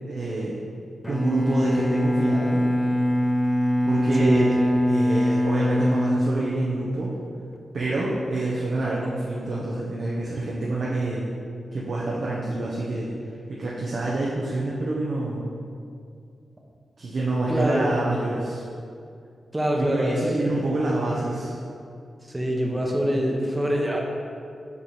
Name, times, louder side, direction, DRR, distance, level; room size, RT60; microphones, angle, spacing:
voice 1, 0.1-0.5 1.1-2.6 3.8-4.5 4.9-7.1 7.7-11.2 11.7-13.1 13.5-15.5 17.0-18.6 19.8-21.5, right 2 dB, 65° right, -6 dB, 0.8 m, -27 dB
Bowed string instrument, 1.0-7.1, equal, 10° left, 0.3 m, -23 dB
voice 2, 4.1-4.8 17.5-18.0 19.5-20.6 22.2-24.0, equal, 20° right, 0 dB, 0.9 m, -25 dB
7.2 x 3.2 x 4.2 m, 2.4 s
cardioid pair, 75°, 0 cm